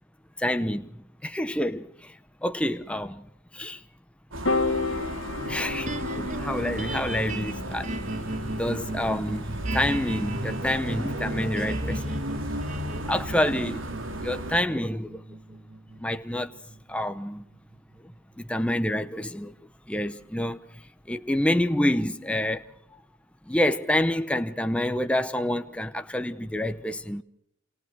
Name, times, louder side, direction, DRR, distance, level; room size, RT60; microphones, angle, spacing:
voice 1, 0.4-3.3 3.5-3.8 4.7-5.1 5.5-7.9 8.6-12.3 12.8-13.9 14.2-15.2 16.0-16.5 16.9-17.5 18.4-19.5 19.9-20.6 21.1-22.6 23.5-27.2, left 1 dB, 5° left, 0.9 m, -28 dB
sound 1, 4.3-14.6, right 1 dB, 75° right, 2.9 m, -34 dB
Piano, 4.5-10.8, left 3 dB, 80° left, 1.8 m, -33 dB
sound 2, 5.9-18.2, right 2 dB, 40° right, 1.9 m, -37 dB
28.5 x 27.5 x 4.7 m
head